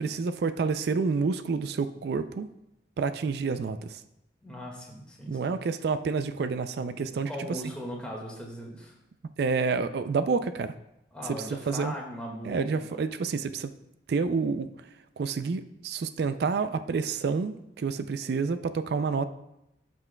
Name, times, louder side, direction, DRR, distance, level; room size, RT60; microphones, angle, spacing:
voice 1, 0.0-2.5 3.0-4.0 5.3-7.3 9.4-10.7 11.7-11.9 12.4-13.7 14.1-14.7 15.2-19.2, right 4 dB, 60° right, 11 dB, 0.3 m, -28 dB
voice 2, 4.4-5.5 7.1-9.0 11.1-13.0, equal, 5° left, -3 dB, 1.7 m, -39 dB
15.0 x 6.0 x 2.2 m, 0.87 s
head